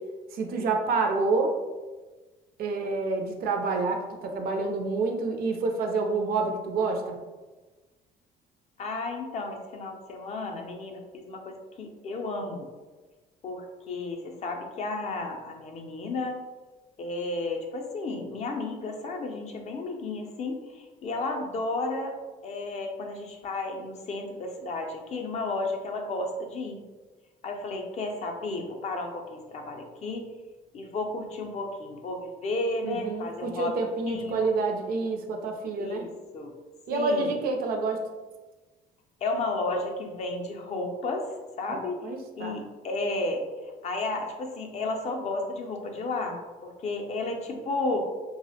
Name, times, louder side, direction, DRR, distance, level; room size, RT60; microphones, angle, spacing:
voice 1, 0.3-1.5 2.6-7.2 32.8-36.1 36.9-38.0 41.7-42.6, right 3 dB, 60° right, 4 dB, 0.4 m, -28 dB
voice 2, 8.8-12.7 13.4-16.4 17.0-22.2 22.4-26.8 27.4-30.3 30.7-33.8 34.1-34.5 35.8-36.1 36.3-36.5 36.9-37.4 39.2-42.0 42.4-43.5 43.8-48.0, left 2 dB, 40° left, 2 dB, 0.4 m, -33 dB
2.4 x 2.0 x 2.7 m, 1.2 s
cardioid pair, 110°, 17 cm